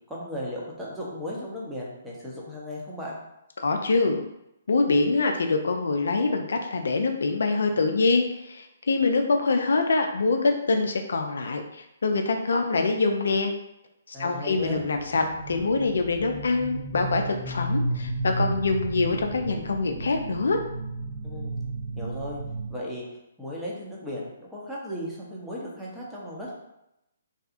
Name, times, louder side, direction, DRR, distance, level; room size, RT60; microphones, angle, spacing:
voice 1, 0.1-3.2 14.1-14.8 21.2-21.6 22.0-22.4 22.7-23.0 23.4-26.6, equal, 5° right, -6 dB, 0.7 m, -36 dB
voice 2, 3.6-4.2 4.7-13.5 14.1-20.6, left 3 dB, 75° left, 4 dB, 0.3 m, -25 dB
sound 1, 14.5-22.7, right 2 dB, 70° right, 0.8 m, -33 dB
2.7 x 2.3 x 2.5 m, 0.85 s
hypercardioid pair, 135°, 0 cm